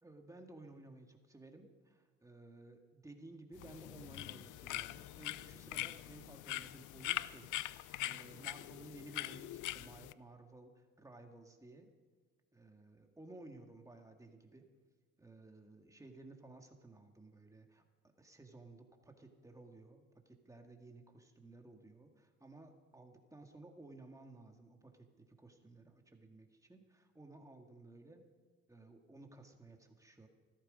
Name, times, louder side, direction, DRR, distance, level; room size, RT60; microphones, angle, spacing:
voice 1, 0.0-7.5 8.0-11.9 12.5-14.7 15.2-17.8 18.2-28.2 28.7-30.3, right 2 dB, 10° right, 3 dB, 2.0 m, -56 dB
sound 1, 3.6-10.1, left 16 dB, 80° left, 0.5 m, -43 dB
15.5 x 13.0 x 5.2 m, 1.5 s
cardioid pair, 90°, 30 cm